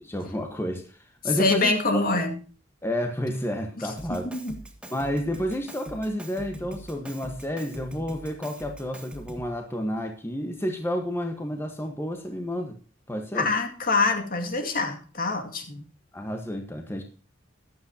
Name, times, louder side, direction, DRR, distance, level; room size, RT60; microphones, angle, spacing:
voice 1, 0.0-1.8 2.8-4.3 4.9-12.7 13.1-13.5 16.1-17.0, equal, 10° left, 4 dB, 1.3 m, -30 dB
voice 2, 1.4-2.3 4.2-4.6 13.3-15.8, left 3 dB, 45° left, 5 dB, 2.2 m, -25 dB
Drum kit, 4.0-9.6, right 1 dB, 5° right, 1.8 m, -42 dB
14.5 x 11.0 x 2.8 m, 0.39 s
head